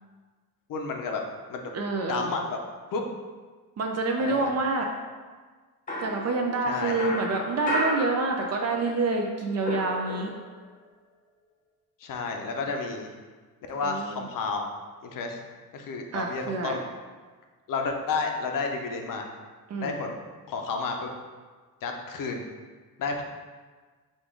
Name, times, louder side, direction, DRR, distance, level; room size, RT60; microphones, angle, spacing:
voice 1, 0.7-1.2 1.5-1.7 2.1-2.6 2.9-3.0 4.2-4.5 6.7-7.0 12.0-13.1 13.7-14.7 15.0-15.4 15.7-16.8 17.7-19.3 19.8-21.1 21.8-22.4 23.0-23.2, left 4 dB, 65° left, 3 dB, 0.6 m, -31 dB
voice 2, 1.7-2.3 3.8-4.9 6.0-10.3 13.8-14.2 16.1-16.8 19.7-20.0, right 3 dB, 45° right, 2 dB, 0.4 m, -27 dB
sound 1, 5.9-8.9 9.2-10.6, left 1 dB, 20° left, 0.7 m, -33 dB
5.1 x 2.4 x 3.6 m, 1.4 s
cardioid pair, 130°, 36 cm